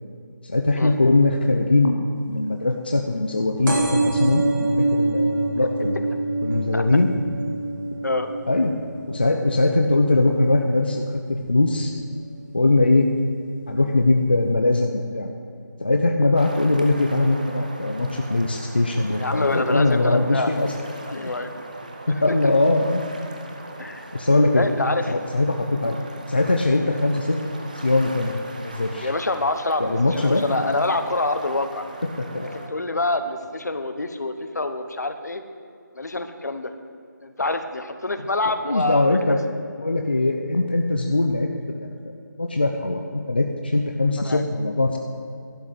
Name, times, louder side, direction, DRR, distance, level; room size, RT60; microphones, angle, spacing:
voice 1, 0.4-6.0 6.4-7.1 8.5-8.7 9.1-11.0 11.3-11.9 12.5-13.1 13.7-15.3 15.8-20.7 21.1-21.3 22.1-23.0 24.1-24.7 25.1-26.0 26.3-27.4 27.8-28.3 28.6-29.1 29.8-30.4 32.3-32.5 38.6-41.5 41.8-45.0, left 2 dB, 30° left, 3 dB, 0.5 m, -21 dB
sound 1, 3.7-10.9 11.4-11.8 12.7-12.8 13.0-13.1 13.3-13.4, right 2 dB, 85° right, 3.7 m, -26 dB
sound 2, 16.4-32.7, right 2 dB, 25° right, 0.7 m, -40 dB
voice 2, 19.2-20.5 21.1-21.5 22.3-22.5 23.8-24.0 24.5-25.1 29.0-31.8 32.5-35.4 35.9-36.7 37.2-39.3 44.2-44.4, left 2 dB, 55° left, 8 dB, 1.0 m, -26 dB
12.0 x 6.3 x 9.4 m, 2.4 s
figure-of-eight pair, 180°, 11 cm